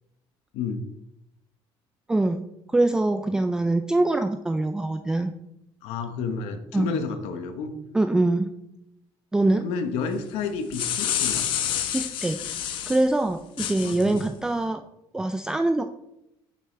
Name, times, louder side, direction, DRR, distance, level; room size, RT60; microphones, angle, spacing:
voice 1, 2.1-2.4 2.7-5.3 6.7-6.9 7.9-8.5 9.3-9.6 11.9-12.4 12.9-14.8 15.1-15.8, right 2 dB, 5° right, 7 dB, 0.3 m, -23 dB
voice 2, 5.8-7.7 9.5-11.5 13.8-14.2, left 5 dB, 85° left, 8 dB, 1.1 m, -31 dB
sound 1, 10.5-13.0 13.6-14.2, left 10 dB, 55° left, 0.9 m, -28 dB
9.1 x 6.8 x 3.2 m, 0.83 s
cardioid pair, 165°, 10 cm